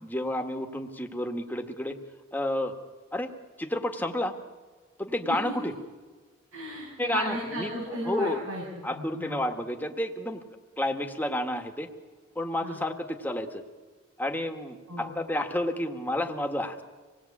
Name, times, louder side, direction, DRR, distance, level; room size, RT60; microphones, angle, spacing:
voice 1, 0.0-2.0 2.3-2.7 3.1-4.3 5.0-5.7 7.0-7.7 8.0-8.4 8.8-10.4 10.8-11.9 12.3-13.6 14.2-16.8, left 1 dB, 10° left, 5 dB, 1.7 m, -30 dB
voice 2, 6.5-9.4 12.6-12.8 14.9-15.1, right 1 dB, 85° right, -3 dB, 7.5 m, -35 dB
26.5 x 20.0 x 8.6 m, 1.4 s
head